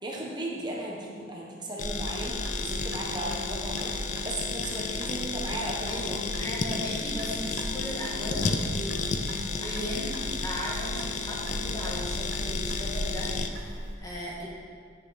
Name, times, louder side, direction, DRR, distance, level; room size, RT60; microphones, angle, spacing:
voice 1, 0.0-3.9 4.2-6.2 9.6-9.9, right 1 dB, 20° right, -2 dB, 1.3 m, -36 dB
sound 1, 1.8-13.5, left 5 dB, 40° left, 0.4 m, -33 dB
Clock, 1.8-13.9, equal, 85° right, 2.0 m, -37 dB
voice 2, 5.9-10.1 10.4-14.5, equal, 20° left, -5 dB, 1.7 m, -37 dB
8.5 x 8.3 x 4.2 m, 2.1 s
head